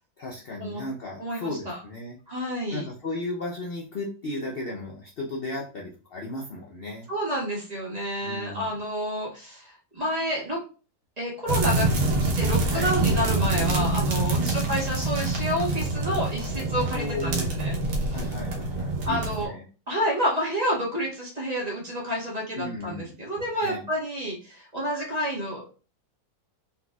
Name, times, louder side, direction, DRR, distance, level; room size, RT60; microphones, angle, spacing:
voice 1, 0.2-2.2 2.7-7.1 8.2-8.7 12.6-12.9 14.4-14.8 16.9-17.6 18.1-19.7 22.5-23.2 23.6-23.8, left 2 dB, 70° left, -1 dB, 0.5 m, -35 dB
voice 2, 1.2-1.8 2.3-2.9 7.1-10.6 11.2-11.9 12.2-18.2 19.0-19.5 19.9-25.7, equal, 25° right, -4 dB, 1.4 m, -29 dB
sound 1, 11.5-19.5, right 2 dB, 70° right, 1.6 m, -26 dB
4.1 x 4.0 x 2.3 m, 0.36 s
omnidirectional pair, 1.9 m